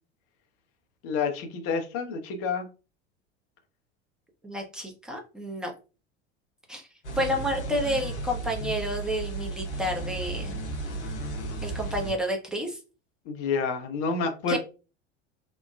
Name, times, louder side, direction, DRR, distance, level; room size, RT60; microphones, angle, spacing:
voice 1, 1.0-2.7 13.3-14.6, left 5 dB, 40° left, 0.7 m, -29 dB
voice 2, 4.4-5.7 6.7-6.9 7.2-10.6 11.6-12.8 14.5-14.6, equal, ahead, 0.7 m, -30 dB
sound 1, 7.0-12.1, right 2 dB, 75° left, 0.8 m, -34 dB
3.0 x 2.2 x 2.3 m
figure-of-eight pair, 75°, 35 cm